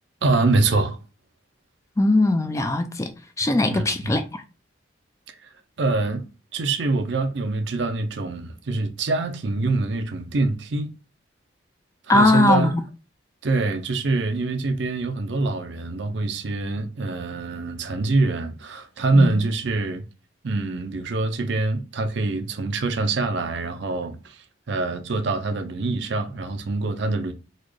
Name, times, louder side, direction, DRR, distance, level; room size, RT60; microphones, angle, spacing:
voice 1, 0.2-1.0 3.7-4.2 5.4-5.5 5.8-6.2 6.5-10.9 12.1-12.7 13.4-20.0 20.4-27.3, right 3 dB, 65° right, 0.5 m, -24 dB
voice 2, 2.0-3.1 3.4-4.4 12.1-12.7 19.1-19.3, left 2 dB, 15° left, 0.3 m, -20 dB
4.1 x 2.3 x 3.2 m
head